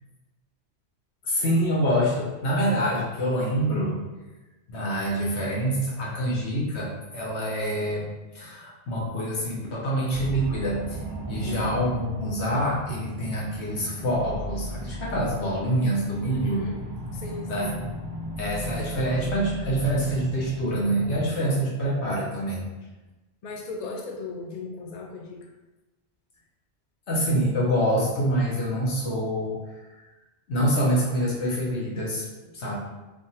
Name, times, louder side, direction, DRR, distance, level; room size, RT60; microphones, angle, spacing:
voice 1, 1.2-4.0 4.7-8.1 8.3-11.0 11.3-16.6 17.5-17.8 18.4-22.6 27.1-29.6 30.5-32.3 32.5-32.7, equal, 75° left, -5 dB, 1.1 m, -26 dB
sound 1, 10.1-21.3, right 1 dB, 55° right, 0.4 m, -36 dB
voice 2, 11.3-11.8 16.3-16.8 17.1-17.8 23.4-25.4, left 3 dB, 55° left, -1 dB, 0.4 m, -36 dB
3.4 x 2.3 x 2.7 m, 1.1 s
omnidirectional pair, 1.2 m